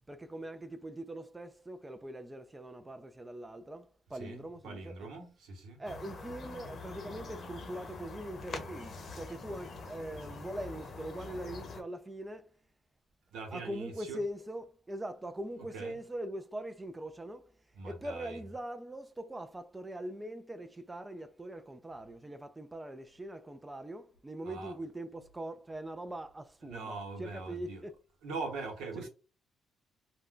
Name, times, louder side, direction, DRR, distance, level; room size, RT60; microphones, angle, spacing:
voice 1, 0.1-5.1 5.8-12.6 13.5-17.5 17.8-27.9 29.0-29.1, right 1 dB, 15° right, 0.4 m, -42 dB
voice 2, 4.2-5.8 13.3-14.2 15.7-16.0 17.8-18.4 24.4-24.7 26.6-27.8 28.2-29.1, right 3 dB, 90° right, 1.0 m, -42 dB
sound 1, 5.8-11.8, left 3 dB, 50° left, 0.8 m, -45 dB
2.5 x 2.2 x 3.7 m
cardioid pair, 90°, 0 cm